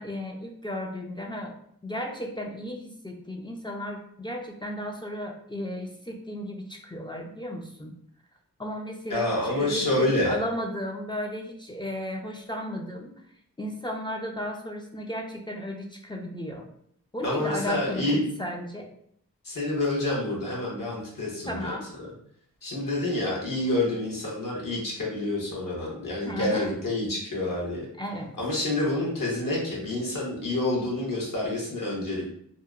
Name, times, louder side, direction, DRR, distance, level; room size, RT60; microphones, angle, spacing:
voice 1, 0.0-1.5 1.8-7.9 8.6-13.2 13.6-16.7 17.1-18.9 21.5-21.9 26.2-26.7 28.0-28.3, left 1 dB, 15° left, 1 dB, 0.3 m, -34 dB
voice 2, 9.1-10.4 17.2-18.2 19.4-21.7 22.6-27.8 28.4-32.3, left 1 dB, 65° left, -4 dB, 1.1 m, -28 dB
2.7 x 2.1 x 2.3 m, 0.66 s
cardioid pair, 45°, 35 cm